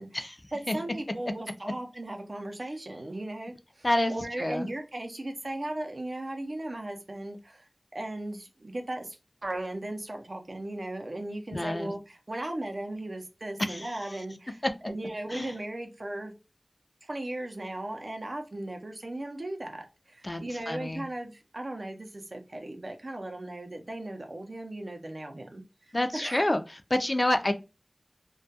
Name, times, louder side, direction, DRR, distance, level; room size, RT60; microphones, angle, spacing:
voice 1, 0.5-7.7 7.9-16.3 17.0-26.5, right 1 dB, 70° right, 4 dB, 0.5 m, -37 dB
voice 2, 3.8-4.7 11.5-11.9 13.7-13.9 14.6-14.7 15.3-15.5 20.2-21.0 25.9-26.6 26.9-27.5, left 1 dB, 40° left, 7 dB, 0.4 m, -28 dB
2.2 x 2.2 x 2.7 m, 0.29 s
wide cardioid pair, 50°, 0 cm